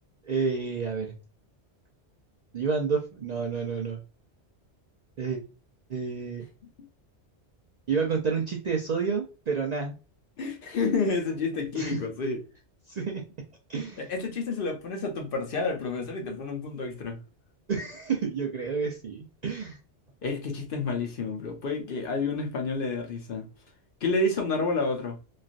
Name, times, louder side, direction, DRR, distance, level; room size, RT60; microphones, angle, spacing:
voice 1, 0.2-1.1 2.5-4.0 5.2-5.4 5.9-6.4 7.9-9.9 11.7-12.0 12.9-13.2 13.7-14.1 17.7-19.8, right 5 dB, 55° right, 0.5 m, -29 dB
voice 2, 10.4-12.4 14.0-17.2 20.2-23.5 24.0-25.2, left 3 dB, 60° left, 0.8 m, -29 dB
3.1 x 2.4 x 2.4 m
omnidirectional pair, 1.1 m